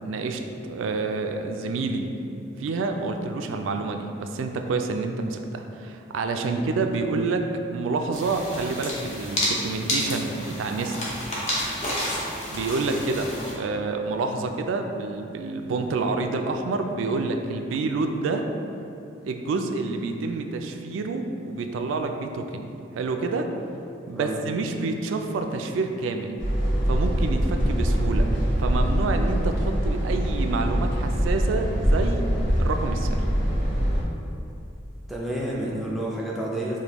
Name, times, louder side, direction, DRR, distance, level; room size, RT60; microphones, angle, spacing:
voice 1, 0.0-2.1 2.6-7.4 7.7-10.9 12.5-18.4 19.2-22.7 22.9-23.5 24.1-26.4 26.9-28.3 28.6-32.3 32.6-33.3, right 3 dB, 90° right, 5 dB, 0.3 m, -28 dB
sound 1, 8.1-13.5, left 1 dB, 35° left, 0.7 m, -30 dB
sound 2, 26.4-34.0, equal, 80° left, 0.8 m, -23 dB
voice 2, 35.1-36.8, right 1 dB, ahead, -5 dB, 0.4 m, -30 dB
4.9 x 2.2 x 3.0 m, 2.8 s
head